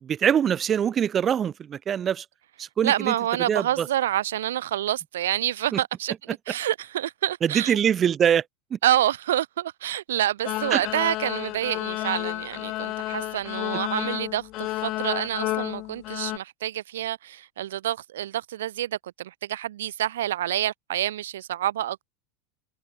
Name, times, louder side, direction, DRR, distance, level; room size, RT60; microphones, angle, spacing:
voice 1, 0.0-2.2 2.6-3.1 3.5-3.9 5.7-5.8 7.4-8.4 8.7-8.8 10.7-10.8, right 8 dB, 30° right, 0.7 m, -23 dB
voice 2, 2.8-7.8 8.8-22.0, right 12 dB, 85° right, 3.8 m, -28 dB
sound 1, 10.5-16.4, left 19 dB, 50° left, 1.2 m, -31 dB
hypercardioid pair, 105°, 0 cm